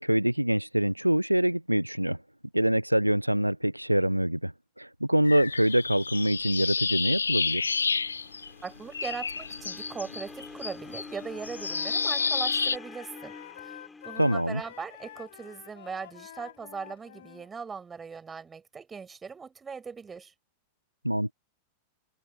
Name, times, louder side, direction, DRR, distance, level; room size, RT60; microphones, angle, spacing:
voice 1, 0.0-2.2 2.5-4.5 4.8-7.7 14.2-14.6 21.0-21.3, right 1 dB, 90° right, 0.7 m, -25 dB
sound 1, 5.3-8.7 8.9-12.8, left 5 dB, 75° left, 0.6 m, -30 dB
sound 2, 7.5-15.7, left 3 dB, 10° left, 7.5 m, -47 dB
voice 2, 8.6-13.3 13.6-20.3, right 5 dB, 15° right, 7.6 m, -40 dB
Wind instrument woodwind instrument, 10.7-17.5, left 12 dB, 60° left, 6.5 m, -48 dB
figure-of-eight pair, 90°, 0 cm